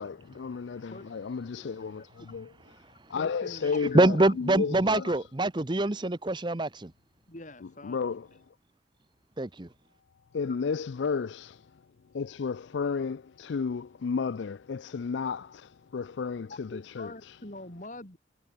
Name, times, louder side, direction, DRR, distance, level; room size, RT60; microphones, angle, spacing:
voice 1, 0.0-2.5 3.1-5.1 7.8-8.3 10.3-11.7 12.1-17.4, left 5 dB, 70° left, 0.4 m, -33 dB
voice 2, 3.1-4.3 4.9-5.1 7.3-8.1 16.5-18.2, left 2 dB, 40° left, 3.5 m, -44 dB
voice 3, 3.9-6.9 9.4-9.7, right 2 dB, 25° right, 0.8 m, -25 dB
head